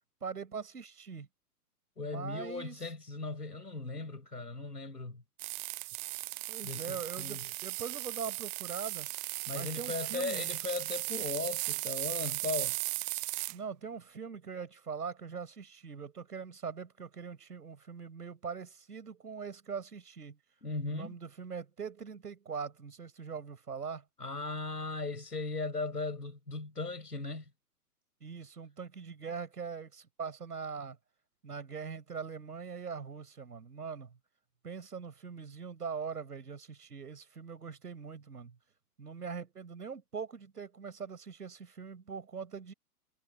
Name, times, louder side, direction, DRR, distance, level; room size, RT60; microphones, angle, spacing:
voice 1, 0.2-1.3 2.0-2.7 6.5-9.1 9.5-10.5 13.5-20.4 20.9-24.0 28.2-31.0 31.4-34.1 34.6-38.5 39.0-42.7, right 6 dB, 75° right, 6.1 m, -42 dB
voice 2, 2.0-5.2 6.6-7.4 9.5-12.8 20.6-21.1 24.2-27.4, left 3 dB, 90° left, 6.3 m, -37 dB
sound 1, 5.4-13.6, right 30 dB, 30° right, 0.7 m, -37 dB
figure-of-eight pair, 105°, 46 cm